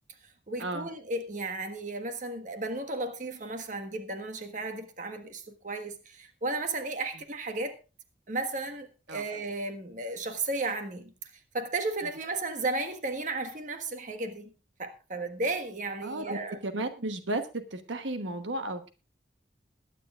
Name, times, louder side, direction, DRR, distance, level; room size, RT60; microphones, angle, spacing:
voice 1, 0.5-7.8 8.3-11.1 11.5-14.5 14.8-16.6, right 2 dB, 45° right, 1.5 m, -34 dB
voice 2, 16.0-16.4 16.6-18.9, right 2 dB, 85° right, 1.1 m, -34 dB
21.0 x 9.7 x 2.4 m
head